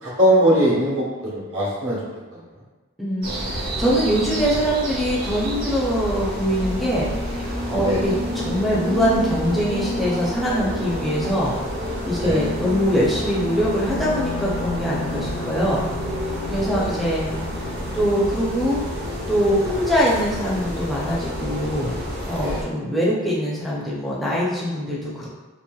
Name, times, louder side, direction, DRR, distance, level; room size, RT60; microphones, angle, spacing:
voice 1, 0.0-2.0 2.3-2.4 7.8-8.0 12.2-12.4 16.7-17.0 22.4-22.6, equal, 65° right, -6 dB, 1.1 m, -21 dB
voice 2, 3.0-11.6 12.1-15.8 16.5-17.3 17.9-18.8 19.3-22.0 22.3-25.3, equal, ahead, -7 dB, 0.4 m, -23 dB
sound 1, 3.2-22.6, equal, 45° right, 0.6 m, -29 dB
Wind instrument woodwind instrument, 13.7-19.9, left 4 dB, 60° left, 0.4 m, -37 dB
3.0 x 2.8 x 2.3 m, 1.2 s
head